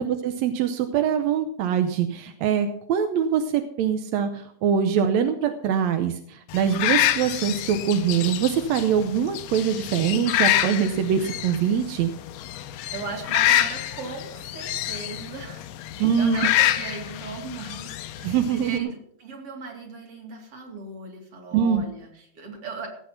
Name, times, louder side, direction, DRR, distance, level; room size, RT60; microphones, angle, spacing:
voice 1, 0.0-12.1 16.0-16.4 18.2-18.9 21.5-21.8, right 8 dB, 75° right, 7 dB, 1.7 m, -23 dB
sound 1, 6.5-18.8, left 13 dB, 90° left, 1.5 m, -27 dB
voice 2, 12.9-22.9, right 4 dB, 45° right, 3 dB, 3.2 m, -38 dB
17.5 x 8.3 x 5.8 m, 0.69 s
omnidirectional pair, 3.9 m